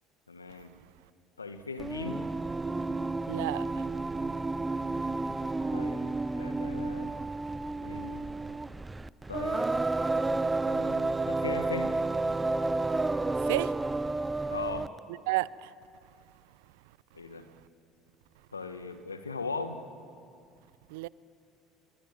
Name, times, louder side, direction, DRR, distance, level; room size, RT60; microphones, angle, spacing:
voice 1, 0.3-0.8 1.4-2.3 5.7-7.1 7.8-8.3 9.3-9.7 10.7-12.0 14.5-14.9 17.1-17.5 18.5-19.8, left 4 dB, 90° left, 10 dB, 1.3 m, -39 dB
Singing, 1.8-15.0, right 2 dB, 15° right, 0.7 m, -31 dB
voice 2, 3.3-3.7 13.5-13.7 15.3-15.7 20.9-21.1, right 20 dB, 70° right, 21 dB, 0.6 m, -30 dB
27.0 x 23.0 x 8.9 m, 2.4 s
figure-of-eight pair, 65°, 0 cm